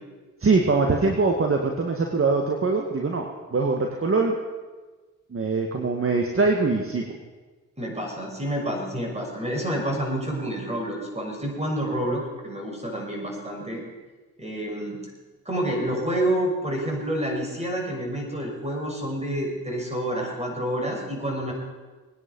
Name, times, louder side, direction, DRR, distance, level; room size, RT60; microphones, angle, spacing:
voice 1, 0.4-3.2 3.5-4.4 5.3-7.0, right 3 dB, 40° right, 2 dB, 2.0 m, -22 dB
voice 2, 7.8-13.8 14.4-15.0 15.4-21.5, right 1 dB, 20° right, 0 dB, 6.1 m, -28 dB
20.5 x 10.0 x 5.5 m, 1.3 s
supercardioid pair, 50°, 32 cm